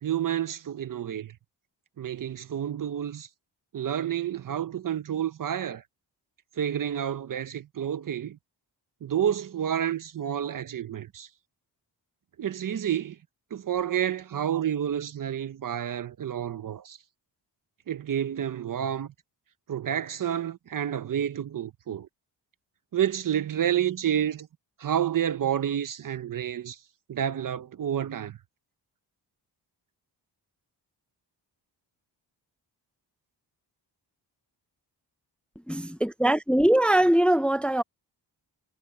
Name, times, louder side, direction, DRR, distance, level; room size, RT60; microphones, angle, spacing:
voice 1, 0.0-1.3 2.0-3.3 3.7-5.8 6.6-8.4 9.0-11.3 12.4-13.2 13.5-17.0 17.9-19.1 19.7-22.1 22.9-24.5 24.8-26.8 27.1-28.4, right 9 dB, 50° right, 0.7 m, -29 dB
voice 2, 35.7-37.8, right 1 dB, 5° left, 0.6 m, -22 dB
wide cardioid pair, 140°, 43 cm